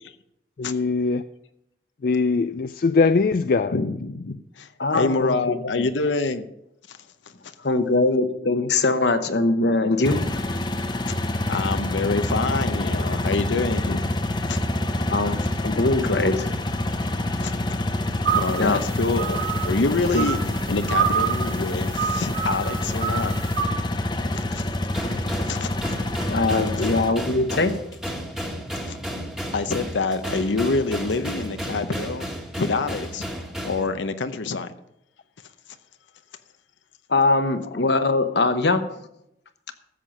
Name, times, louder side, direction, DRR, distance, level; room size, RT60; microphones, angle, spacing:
voice 1, 0.6-1.2 2.0-3.8, left 4 dB, 50° left, 11 dB, 0.4 m, -21 dB
voice 2, 3.7-4.7 4.9-6.5 6.9-7.0 11.5-14.0 14.5-14.6 17.4-17.5 18.3-19.4 19.6-20.4 20.7-23.4 24.3-24.6 25.5-25.7 26.8-26.9 28.2-28.3 28.9-29.3 29.5-33.2 33.6-34.7, left 3 dB, 85° left, 9 dB, 0.7 m, -26 dB
voice 3, 4.8-5.4 5.7-5.9 7.6-10.2 14.9-16.5 18.6-18.8 20.1-20.2 26.3-27.8 37.1-38.8, left 2 dB, 70° left, 9 dB, 1.0 m, -22 dB
sound 1, 10.0-27.1, left 1 dB, 25° left, 0.8 m, -27 dB
sound 2, 18.2-23.6, right 8 dB, 85° right, 3.6 m, -28 dB
sound 3, 24.9-33.8, equal, 5° right, 1.4 m, -32 dB
13.5 x 7.4 x 5.4 m, 0.80 s
head